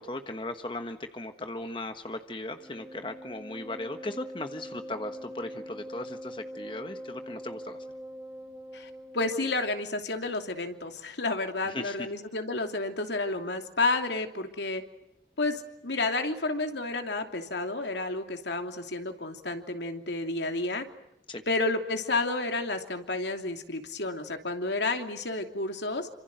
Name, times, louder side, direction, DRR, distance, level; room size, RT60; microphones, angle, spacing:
voice 1, 0.0-7.8 11.7-12.1 21.3-21.4, left 2 dB, 30° left, 7 dB, 1.3 m, -37 dB
Wind instrument woodwind instrument, 2.6-9.6, equal, 15° right, 1.9 m, -43 dB
voice 2, 8.7-14.8 15.4-20.8 21.5-26.1, left 2 dB, 80° left, 5 dB, 2.9 m, -31 dB
28.0 x 26.0 x 7.9 m, 0.84 s
head